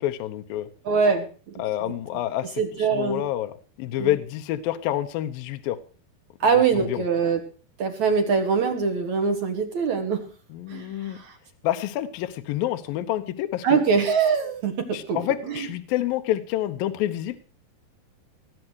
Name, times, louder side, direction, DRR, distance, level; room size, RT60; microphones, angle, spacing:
voice 1, 0.0-0.7 1.6-2.5 2.8-5.8 6.7-7.0 10.5-11.2 11.6-13.8 14.9-17.4, left 13 dB, 70° left, 8 dB, 2.6 m, -28 dB
voice 2, 0.8-1.5 2.6-3.2 4.0-4.2 6.4-7.4 7.8-10.2 10.7-11.3 13.6-15.2 15.5-15.7, right 5 dB, 55° right, 5 dB, 2.7 m, -23 dB
19.0 x 8.5 x 6.3 m, 0.39 s
omnidirectional pair, 4.5 m